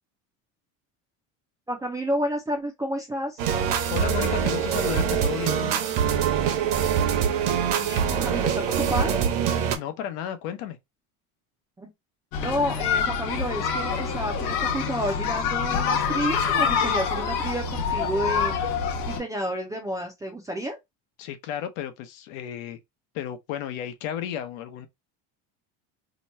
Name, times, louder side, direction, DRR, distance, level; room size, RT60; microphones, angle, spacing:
voice 1, 1.7-3.4 7.8-8.6 8.9-9.2 11.8-11.9 12.4-18.5 19.1-20.8, equal, 10° right, 0.3 m, -30 dB
sound 1, 3.4-9.8, right 8 dB, 70° right, 0.9 m, -24 dB
voice 2, 3.9-5.7 9.8-10.8 21.2-22.8 23.1-24.9, left 10 dB, 85° left, 0.9 m, -33 dB
sound 2, 12.3-19.2, left 6 dB, 55° left, 0.8 m, -26 dB
3.0 x 2.2 x 4.0 m
cardioid pair, 160°, 41 cm